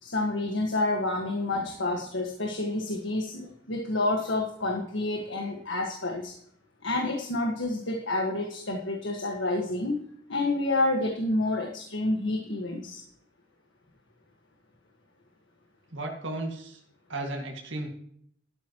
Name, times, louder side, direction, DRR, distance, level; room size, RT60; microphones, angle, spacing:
voice 1, 0.0-6.3 6.8-10.0 10.3-13.0, left 2 dB, 75° left, 1 dB, 1.7 m, -29 dB
voice 2, 15.9-16.8 17.1-17.9, right 2 dB, 80° right, 1 dB, 2.2 m, -34 dB
12.5 x 12.5 x 3.1 m, 0.66 s
head